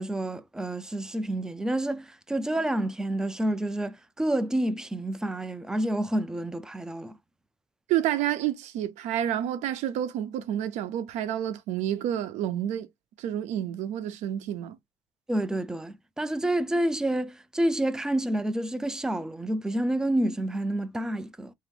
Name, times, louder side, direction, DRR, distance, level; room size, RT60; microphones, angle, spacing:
voice 1, 0.0-7.2 15.3-21.5, right 1 dB, 5° right, 0.3 m, -29 dB
voice 2, 7.9-12.9 13.2-14.8, right 11 dB, 85° right, 0.7 m, -29 dB
3.8 x 2.7 x 3.3 m
cardioid pair, 150°, 12 cm